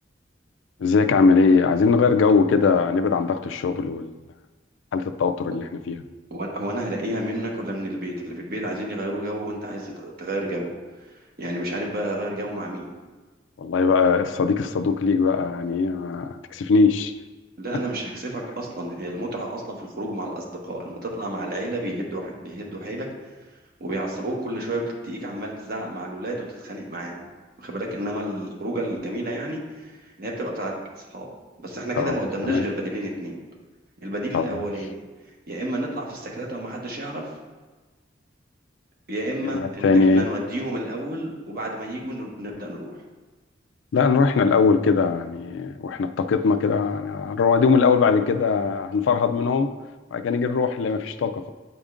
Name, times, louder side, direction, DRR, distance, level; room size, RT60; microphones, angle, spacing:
voice 1, 0.8-4.1 4.9-6.0 13.6-17.1 32.0-32.2 32.4-32.6 34.3-34.5 39.4-40.3 43.9-49.7 50.1-51.5, left 4 dB, 80° left, 9 dB, 0.4 m, -20 dB
voice 2, 6.3-10.7 11.4-12.9 17.6-23.1 23.8-27.3 27.6-31.3 31.6-33.4 34.0-35.0 35.5-37.3 39.1-43.0, right 1 dB, 55° right, -1 dB, 1.0 m, -31 dB
8.0 x 5.0 x 2.5 m, 1.3 s
head